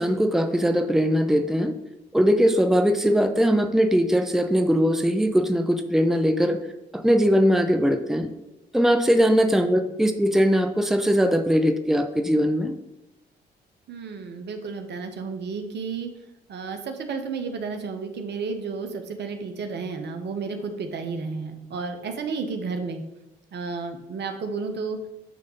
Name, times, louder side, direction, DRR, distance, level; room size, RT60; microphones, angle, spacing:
voice 1, 0.0-1.7 2.1-6.6 6.9-8.3 8.7-12.7, equal, ahead, 7 dB, 0.8 m, -20 dB
voice 2, 13.9-16.1 16.5-23.0 23.5-25.0, right 4 dB, 60° right, 6 dB, 1.0 m, -32 dB
9.0 x 3.6 x 5.4 m, 0.94 s
hypercardioid pair, 50°, 20 cm